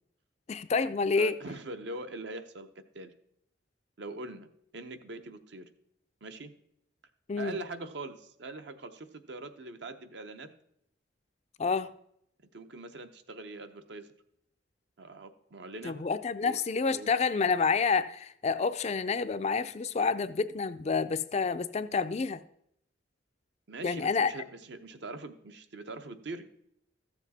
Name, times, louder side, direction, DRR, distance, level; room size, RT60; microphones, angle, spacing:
voice 1, 0.5-1.3 7.3-7.5 11.6-11.9 15.8-22.4 23.8-24.3, left 5 dB, 35° left, 11 dB, 0.4 m, -28 dB
voice 2, 1.2-3.1 4.0-4.5 4.7-5.7 6.2-6.5 7.4-10.5 12.5-14.1 15.0-16.0 16.4-16.6 16.9-17.1 23.7-26.5, right 2 dB, 60° right, 8 dB, 0.8 m, -42 dB
14.0 x 7.1 x 4.1 m, 0.74 s
head